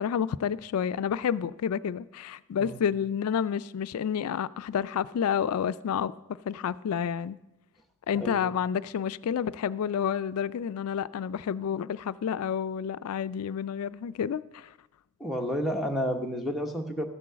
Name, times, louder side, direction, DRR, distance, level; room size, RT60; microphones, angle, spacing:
voice 1, 0.0-6.1 6.5-7.4 8.1-14.7, left 8 dB, 85° left, 0.3 m, -29 dB
voice 2, 8.1-8.5 15.2-17.1, equal, ahead, 1.0 m, -31 dB
13.5 x 6.2 x 7.5 m
head